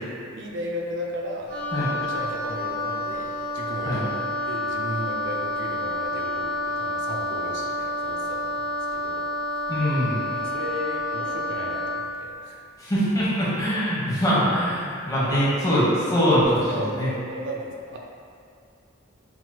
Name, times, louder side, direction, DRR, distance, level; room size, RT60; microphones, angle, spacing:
voice 1, 0.4-1.5 2.0-3.3 3.5-4.0 4.5-8.7 8.9-9.3 10.3-12.6 15.7-15.9 16.7-17.0 17.3-18.0, equal, 60° right, -1 dB, 0.4 m, -35 dB
Wind instrument woodwind instrument, 1.5-12.1, left 2 dB, 40° right, 1.4 m, -29 dB
voice 2, 9.7-10.2 12.8-17.1, equal, 15° left, -9 dB, 1.0 m, -23 dB
5.8 x 2.9 x 2.2 m, 2.3 s
head